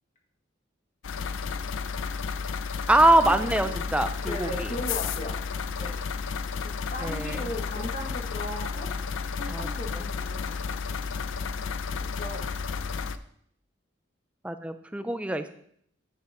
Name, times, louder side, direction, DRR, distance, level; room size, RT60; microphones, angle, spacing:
sound 1, 1.0-13.2, left 5 dB, 75° left, 0.5 m, -32 dB
voice 1, 2.9-4.7 7.0-7.4 9.5-9.7 14.4-15.5, right 1 dB, 5° right, 10 dB, 0.4 m, -23 dB
voice 2, 4.2-5.3 5.8-6.0 6.9-8.9 9.4-10.8 12.1-12.4, left 1 dB, 35° left, 0 dB, 1.7 m, -37 dB
9.4 x 5.7 x 4.9 m, 0.67 s
head